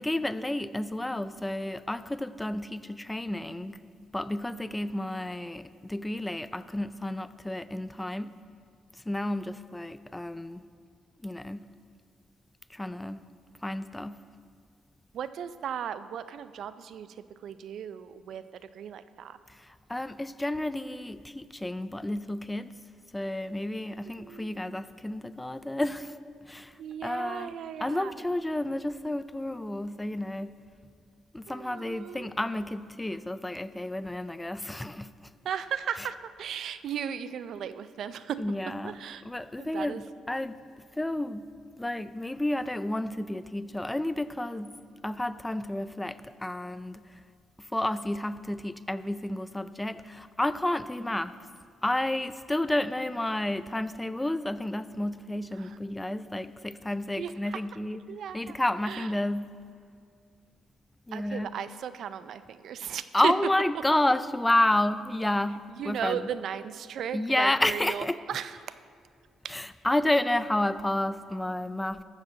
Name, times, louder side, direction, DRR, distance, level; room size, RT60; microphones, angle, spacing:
voice 1, 0.0-3.8 4.1-8.4 9.1-10.6 11.2-11.7 12.7-13.2 13.6-14.2 19.5-22.8 23.1-26.1 26.5-26.8 27.0-27.5 27.8-30.6 31.3-35.3 38.4-39.0 39.2-40.6 41.0-41.5 41.8-44.8 45.0-47.1 47.6-51.3 51.8-58.0 58.3-59.6 61.1-61.5 63.1-66.2 67.1-68.2 69.5-72.0, left 1 dB, 10° left, 0.4 m, -30 dB
voice 2, 15.1-19.4 24.2-24.8 26.8-28.1 31.5-32.3 35.4-38.4 38.8-39.2 39.6-40.0 55.6-55.8 57.2-57.6 58.1-58.6 58.9-59.1 61.1-63.3 65.7-68.8 69.4-69.6, right 8 dB, 70° right, 0.4 m, -36 dB
12.5 x 4.9 x 7.5 m
cardioid pair, 90°, 0 cm